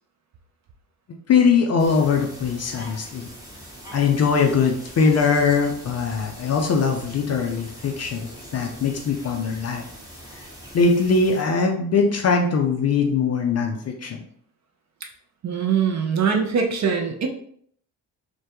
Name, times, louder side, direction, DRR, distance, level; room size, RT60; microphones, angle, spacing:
voice 1, 1.3-3.3 3.9-9.9 10.3-10.4 10.7-14.2, left 5 dB, 35° left, 3 dB, 0.4 m, -21 dB
sound 1, 1.8-11.4, equal, 5° right, 0.8 m, -42 dB
voice 2, 15.4-17.3, right 6 dB, 35° right, 3 dB, 0.5 m, -22 dB
2.1 x 2.1 x 2.8 m, 0.63 s
hypercardioid pair, 45°, 50 cm